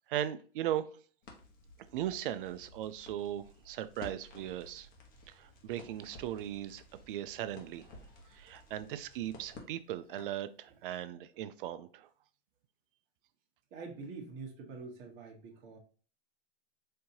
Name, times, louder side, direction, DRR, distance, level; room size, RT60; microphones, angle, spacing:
voice 1, 0.1-0.9 1.9-4.9 5.3-7.9 8.3-12.1, right 12 dB, 60° right, 12 dB, 0.5 m, -38 dB
Crackle, 1.2-10.4, left 2 dB, 30° left, 1.0 m, -54 dB
voice 2, 8.0-8.7 13.7-15.8, right 4 dB, 35° right, 1 dB, 1.1 m, -47 dB
4.4 x 2.8 x 2.7 m, 0.40 s
hypercardioid pair, 125°, 31 cm